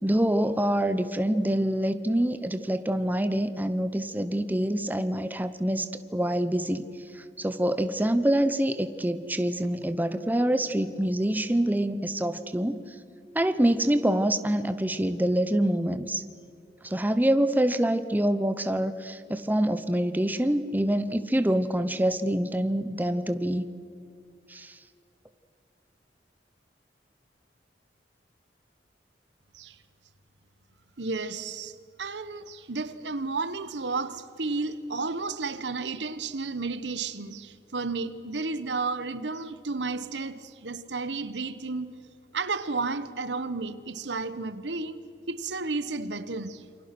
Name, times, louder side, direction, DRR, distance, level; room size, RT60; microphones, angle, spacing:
voice 1, 0.0-5.9 6.1-6.9 7.1-12.8 13.3-16.2 16.8-23.7 24.5-24.8, right 1 dB, 10° right, 0.8 m, -26 dB
voice 2, 31.0-31.7 32.0-41.9 42.3-45.0 45.3-46.6, right 3 dB, 80° right, 1.2 m, -32 dB
28.0 x 25.5 x 6.0 m
head